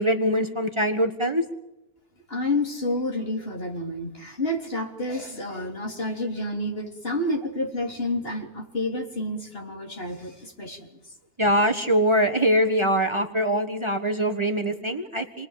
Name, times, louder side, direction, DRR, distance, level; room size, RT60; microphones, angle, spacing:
voice 1, 0.0-1.4 11.4-15.5, equal, 25° right, 6 dB, 1.4 m, -23 dB
voice 2, 2.3-10.9, left 1 dB, 55° left, 1 dB, 3.8 m, -29 dB
28.5 x 21.0 x 7.5 m, 0.95 s
omnidirectional pair, 1.2 m